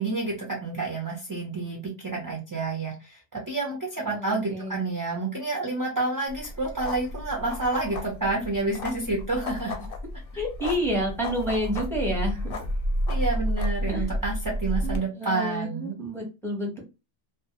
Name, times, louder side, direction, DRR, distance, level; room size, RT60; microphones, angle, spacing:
voice 1, 0.0-9.8 13.1-16.0, right 3 dB, 30° right, -2 dB, 0.4 m, -29 dB
voice 2, 4.0-4.8 10.4-12.5 13.9-14.1 14.8-16.8, equal, 5° left, -1 dB, 0.7 m, -29 dB
sound 1, 6.3-15.0, equal, 60° left, 0.7 m, -31 dB
2.3 x 2.0 x 2.8 m, 0.27 s
omnidirectional pair, 1.2 m